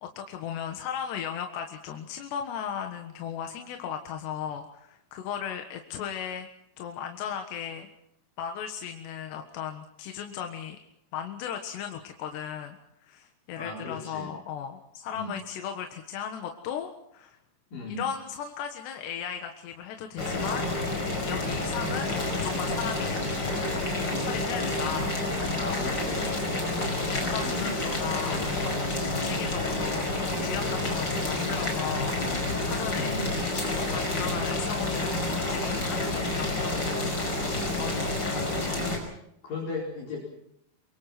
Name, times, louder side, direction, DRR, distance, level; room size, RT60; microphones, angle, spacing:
voice 1, 0.0-6.5 6.8-7.9 8.4-10.8 11.1-12.8 13.0-17.4 18.0-20.7 21.0-23.2 23.7-25.5 26.2-26.4 26.8-33.2 33.9-37.3 37.8-38.4, left 8 dB, 85° left, 5 dB, 3.7 m, -36 dB
voice 2, 13.6-14.3 15.1-15.4 17.7-18.0 25.5-26.5 27.4-27.7 32.9-33.4 39.4-40.2, left 2 dB, 50° left, -3 dB, 6.4 m, -36 dB
Boiling, 20.2-39.0, left 2 dB, 25° left, 5.5 m, -29 dB
25.5 x 23.0 x 6.0 m, 0.76 s
omnidirectional pair, 4.8 m